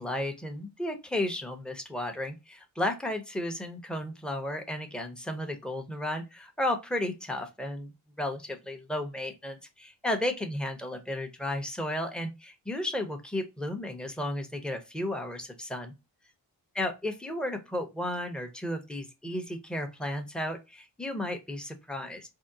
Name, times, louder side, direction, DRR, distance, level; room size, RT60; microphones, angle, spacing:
voice 1, 0.0-15.9 16.7-22.3, left 1 dB, ahead, 4 dB, 0.7 m, -33 dB
3.5 x 2.0 x 2.6 m, 0.25 s
cardioid pair, 50°, 43 cm